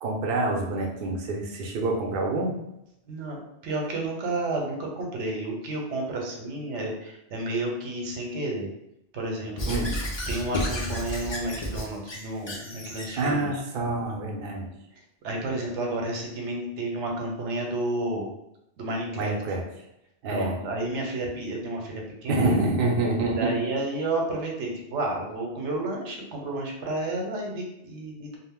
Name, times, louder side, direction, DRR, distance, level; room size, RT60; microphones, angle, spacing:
voice 1, 0.0-2.5 9.7-9.9 13.2-14.7 19.2-19.6 20.2-20.6 22.3-23.5, right 2 dB, 60° right, 0 dB, 0.7 m, -26 dB
voice 2, 3.1-3.4 3.6-8.7 9.1-9.8 10.3-13.5 15.2-18.3 18.8-19.3 20.3-22.6 23.2-28.4, right 2 dB, 80° right, 0 dB, 0.9 m, -31 dB
Squeak / Writing, 9.6-13.3, equal, 45° left, 0.3 m, -32 dB
2.4 x 2.0 x 3.4 m, 0.83 s
omnidirectional pair, 1.2 m